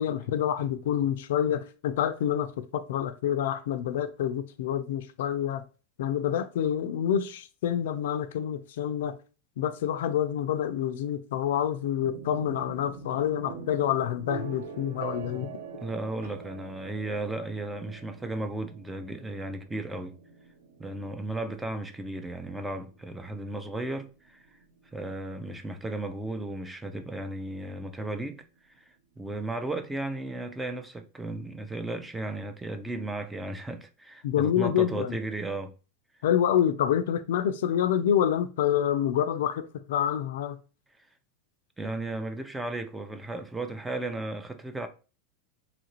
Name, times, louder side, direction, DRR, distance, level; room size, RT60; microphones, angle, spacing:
voice 1, 0.0-5.6 6.0-9.2 9.6-15.5 34.2-35.1 36.2-40.6, left 10 dB, 80° left, 0.3 m, -27 dB
sound 1, 12.0-25.8, right 5 dB, 80° right, 0.6 m, -44 dB
voice 2, 15.8-20.2 20.8-24.5 24.9-28.4 28.8-28.9 29.2-35.7 41.8-44.9, right 2 dB, 10° right, 0.4 m, -35 dB
3.0 x 2.5 x 2.9 m
supercardioid pair, 130°, 0 cm